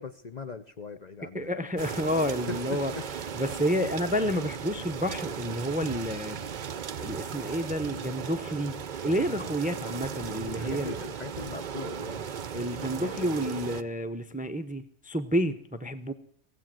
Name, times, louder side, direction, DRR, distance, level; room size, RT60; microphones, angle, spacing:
voice 1, 0.0-1.5 2.5-3.0 10.5-12.3 12.9-13.5, left 5 dB, 45° left, 9 dB, 0.7 m, -40 dB
voice 2, 1.3-2.9 3.3-6.4 7.0-8.8 9.0-11.0 12.5-16.1, equal, 10° right, 10 dB, 0.6 m, -30 dB
sound 1, 1.8-13.8, right 7 dB, 50° right, 0.7 m, -37 dB
17.0 x 8.2 x 7.6 m, 0.69 s
omnidirectional pair, 1.2 m